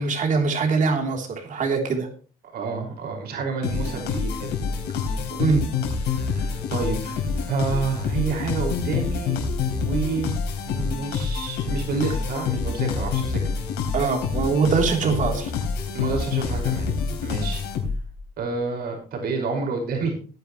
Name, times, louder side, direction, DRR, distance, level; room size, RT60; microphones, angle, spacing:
voice 1, 0.0-2.1 5.4-5.6 13.9-15.5, right 4 dB, 50° right, 3 dB, 3.4 m, -22 dB
voice 2, 2.4-4.5 5.1-5.4 6.0-9.4 9.8-10.4 10.6-13.4 15.9-16.9 17.2-17.6 18.4-20.1, right 4 dB, 65° right, 2 dB, 5.5 m, -29 dB
sound 1, 3.6-18.2, left 5 dB, 80° left, 3.9 m, -27 dB
17.5 x 10.0 x 3.1 m, 0.37 s
cardioid pair, 110°, 17 cm